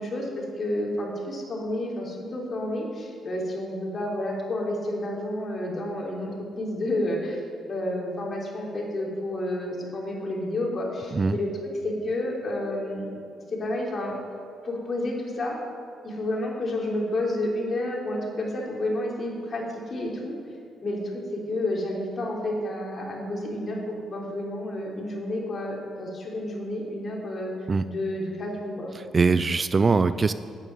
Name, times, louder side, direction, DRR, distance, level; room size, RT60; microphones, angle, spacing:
voice 1, 0.0-6.3 6.6-7.4 7.7-11.5 11.8-13.1 13.5-14.1 14.6-15.6 16.0-20.3 20.8-21.0 21.3-27.5 27.8-28.9, left 1 dB, 40° left, -2 dB, 3.5 m, -30 dB
voice 2, 28.9-30.3, right 4 dB, 30° right, 13 dB, 0.4 m, -22 dB
9.1 x 9.1 x 9.1 m, 2.4 s
cardioid pair, 90°, 0 cm